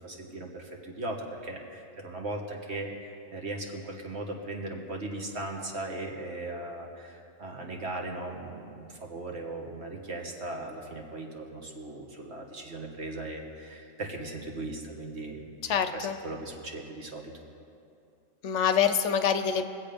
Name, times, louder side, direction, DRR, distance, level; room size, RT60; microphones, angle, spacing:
voice 1, 0.0-17.3, right 2 dB, 55° right, 1 dB, 1.7 m, -38 dB
voice 2, 15.6-16.2 18.4-19.7, left 7 dB, 70° left, 9 dB, 0.9 m, -26 dB
22.0 x 7.9 x 5.2 m, 2.5 s
omnidirectional pair, 1.4 m